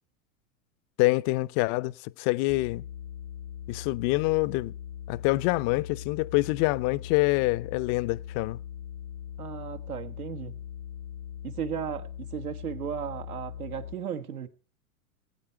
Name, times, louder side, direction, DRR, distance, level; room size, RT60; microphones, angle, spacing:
voice 1, 1.0-2.8 3.7-4.7 5.1-8.6, left 21 dB, 40° left, 0.6 m, -26 dB
sound 1, 2.5-13.9, left 10 dB, 90° left, 1.1 m, -40 dB
voice 2, 9.4-10.6 11.4-14.5, right 8 dB, 85° right, 1.6 m, -35 dB
19.0 x 8.7 x 4.6 m
hypercardioid pair, 100°, 43 cm